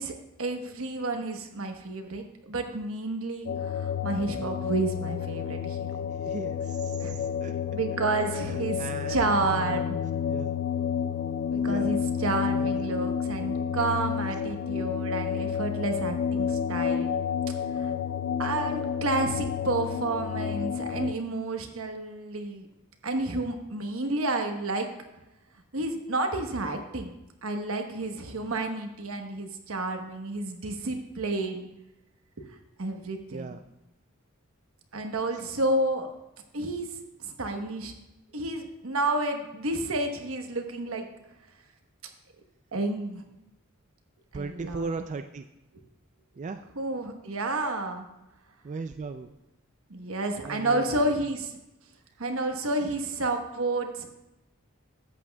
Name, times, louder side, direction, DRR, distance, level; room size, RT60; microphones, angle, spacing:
voice 1, 0.0-5.8 7.0-7.1 7.7-8.8 9.1-10.0 11.5-17.1 17.7-17.9 18.4-22.7 23.0-24.9 25.7-27.1 27.4-31.7 32.4-32.5 32.8-33.6 34.9-36.1 36.5-36.9 37.2-37.9 38.3-41.1 42.7-43.2 44.3-44.8 46.8-48.1 49.9-51.5 52.2-54.1, right 2 dB, 80° right, 4 dB, 1.1 m, -30 dB
sound 1, 3.5-21.1, left 7 dB, 60° left, 0.3 m, -30 dB
voice 2, 6.1-7.5 8.4-9.8 10.3-10.6 11.5-11.9 12.4-12.9 33.3-33.6 44.3-45.5 46.4-46.6 48.6-49.3 50.4-51.1, right 4 dB, 35° right, 7 dB, 0.3 m, -38 dB
13.5 x 8.5 x 2.3 m, 0.94 s
head